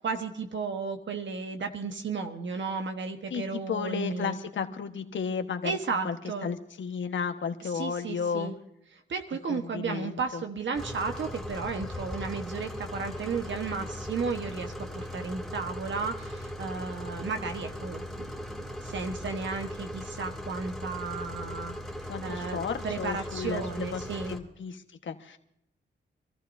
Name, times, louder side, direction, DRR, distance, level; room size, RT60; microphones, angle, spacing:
voice 1, 0.0-4.4 5.6-6.5 7.6-8.5 8.9-18.3 18.6-21.7 22.0-24.3, right 4 dB, 70° right, 5 dB, 1.4 m, -34 dB
voice 2, 3.3-5.8 6.0-6.1 6.4-8.5 9.5-10.4 22.1-25.4, left 6 dB, 70° left, 6 dB, 1.4 m, -33 dB
sound 1, 10.7-24.4, left 1 dB, ahead, 2.9 m, -38 dB
26.5 x 14.0 x 2.7 m, 0.76 s
cardioid pair, 80°, 20 cm